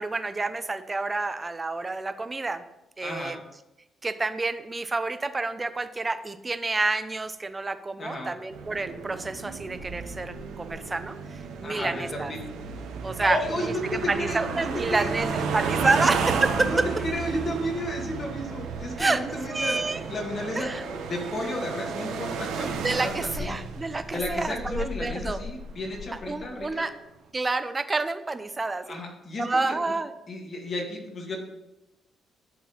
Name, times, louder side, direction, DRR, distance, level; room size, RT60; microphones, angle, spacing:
voice 1, 0.0-2.6 3.0-3.4 4.0-12.3 13.0-13.4 13.8-16.8 19.0-19.2 19.5-20.0 20.6-20.8 22.8-25.4 26.3-26.9 27.3-29.0 29.4-30.1, right 3 dB, 25° right, 10 dB, 0.5 m, -28 dB
voice 2, 3.0-3.4 8.0-8.3 11.6-12.4 13.2-15.3 15.6-16.0 16.6-20.7 21.0-23.6 24.1-26.9 28.9-29.9 30.3-31.4, left 1 dB, 45° left, 1 dB, 1.8 m, -33 dB
sound 1, 8.5-26.7, right 5 dB, 90° right, 0.7 m, -33 dB
11.0 x 3.8 x 2.9 m, 0.93 s
cardioid pair, 90°, 0 cm